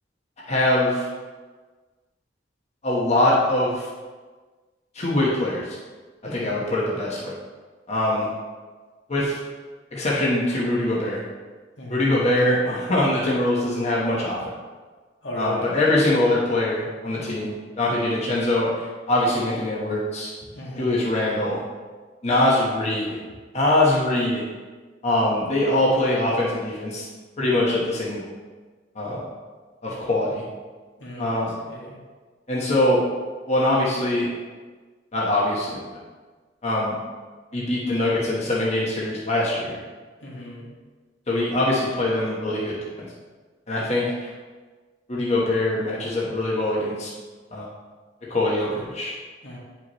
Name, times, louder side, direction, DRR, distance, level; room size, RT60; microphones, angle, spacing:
voice 1, 0.5-1.1 2.8-3.9 4.9-5.8 6.2-7.3 7.9-8.3 9.1-9.4 9.9-11.2 11.9-14.4 15.3-20.3 20.8-21.6 22.2-23.2 23.5-24.4 25.0-27.0 27.4-28.2 28.9-29.2 29.8-30.4 31.2-31.6 32.5-33.1 33.5-34.3 35.1-35.8 36.6-37.0 37.5-39.8 41.3-43.1 43.7-44.3 45.1-47.1 47.5-47.7 48.2-49.1, left 1 dB, 35° left, -5 dB, 1.2 m, -23 dB
voice 2, 6.2-6.6 11.8-12.0 15.2-15.7 17.1-17.4 20.5-21.0 31.0-32.0 40.2-40.7 49.4-49.6, left 1 dB, 75° left, -4 dB, 2.0 m, -37 dB
9.3 x 5.8 x 3.1 m, 1.4 s
head